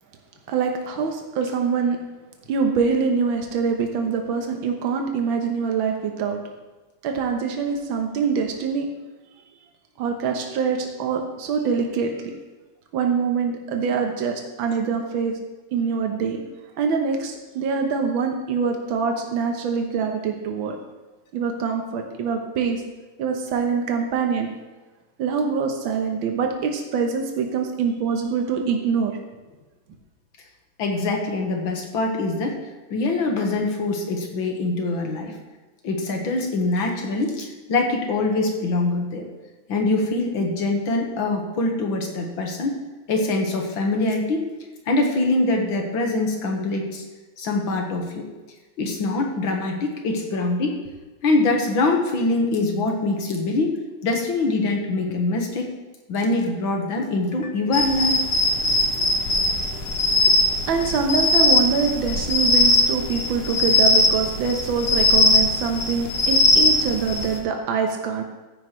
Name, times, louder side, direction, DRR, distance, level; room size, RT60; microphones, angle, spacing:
voice 1, 0.5-2.0 2.5-6.4 7.0-8.9 10.0-12.3 12.9-15.4 15.7-16.4 16.8-20.8 21.3-22.8 23.2-24.5 25.2-29.2 60.7-68.2, right 5 dB, 80° right, 3 dB, 1.8 m, -24 dB
voice 2, 30.8-32.6 32.9-35.3 35.8-39.3 39.7-42.8 43.1-44.4 44.9-47.0 47.4-48.3 48.8-50.8 51.2-53.8 54.0-55.7 56.1-58.2, left 2 dB, 80° left, 2 dB, 2.2 m, -23 dB
sound 1, 57.7-67.4, left 2 dB, 55° left, 1.9 m, -20 dB
14.5 x 9.9 x 3.2 m, 1.2 s
omnidirectional pair, 2.2 m